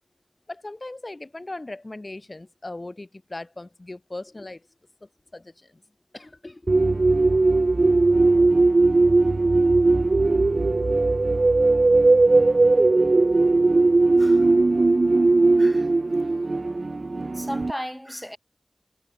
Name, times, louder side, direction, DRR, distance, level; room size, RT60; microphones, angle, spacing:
voice 1, 0.5-4.7 5.0-5.8 6.1-6.6, left 2 dB, 40° left, 4.0 m, -39 dB
sound 1, 6.7-17.7, right 3 dB, 65° right, 0.6 m, -19 dB
voice 2, 14.2-14.5 15.6-16.3 16.7-16.9 17.3-18.4, equal, 5° left, 3.9 m, -36 dB
wide cardioid pair, 65°, 0 cm